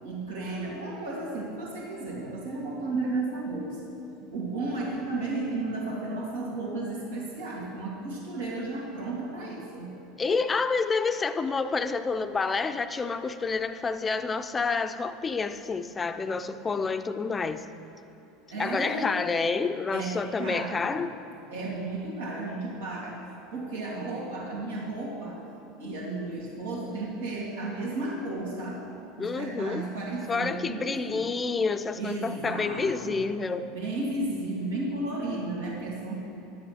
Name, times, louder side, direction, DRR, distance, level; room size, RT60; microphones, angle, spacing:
voice 1, 0.0-4.0 4.2-9.9 18.5-19.2 19.9-21.0 21.5-23.2 23.5-25.4 25.8-28.8 29.2-31.3 32.0-33.2 33.7-36.2, right 2 dB, 75° right, -4 dB, 2.5 m, -33 dB
voice 2, 10.2-17.6 18.6-21.1 29.2-29.9 30.3-33.7, left 4 dB, 20° left, 10 dB, 0.6 m, -29 dB
11.5 x 7.6 x 6.5 m, 3.0 s
hypercardioid pair, 80°, 0 cm